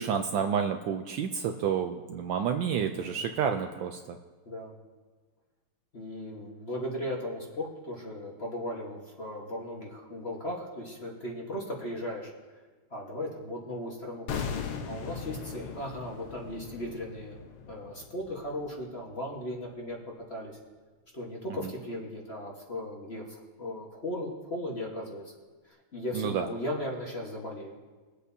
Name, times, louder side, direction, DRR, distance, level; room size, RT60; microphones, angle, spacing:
voice 1, 0.0-4.2 21.6-21.7 26.1-26.5, right 7 dB, 75° right, 6 dB, 1.1 m, -30 dB
voice 2, 2.9-3.4 4.4-4.8 5.9-12.3 12.9-17.4 17.7-20.0 20.3-20.6 21.1-25.2 25.9-27.8, left 1 dB, 35° left, -2 dB, 1.3 m, -37 dB
sound 1, 14.3-19.3 19.6-19.7, left 6 dB, 80° left, 1.7 m, -39 dB
22.5 x 8.2 x 2.7 m, 1.4 s
omnidirectional pair, 2.4 m